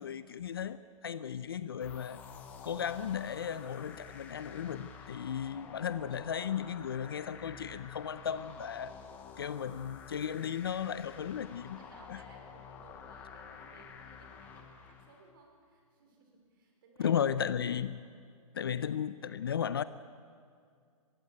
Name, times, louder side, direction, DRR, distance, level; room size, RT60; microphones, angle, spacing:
voice 1, 0.0-2.2 2.6-9.0 9.4-11.8 12.1-12.2 17.0-18.0 18.5-19.8, left 8 dB, 40° left, 0.5 m, -35 dB
sound 1, 1.8-15.3, left 6 dB, 10° left, 0.7 m, -50 dB
voice 2, 11.6-17.1, right 3 dB, 35° right, 4.6 m, -60 dB
21.0 x 15.5 x 9.3 m
hypercardioid pair, 175°, 18 cm